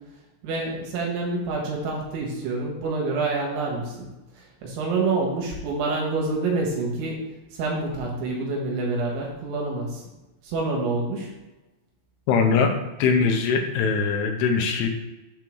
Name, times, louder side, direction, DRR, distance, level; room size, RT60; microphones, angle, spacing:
voice 1, 0.4-4.1 4.4-7.2 7.5-10.0 10.4-11.3, right 3 dB, 75° right, -2 dB, 3.6 m, -27 dB
voice 2, 12.3-12.7 13.0-14.9, left 5 dB, 80° left, 3 dB, 3.0 m, -21 dB
7.8 x 3.7 x 6.0 m, 1.1 s
omnidirectional pair, 5.7 m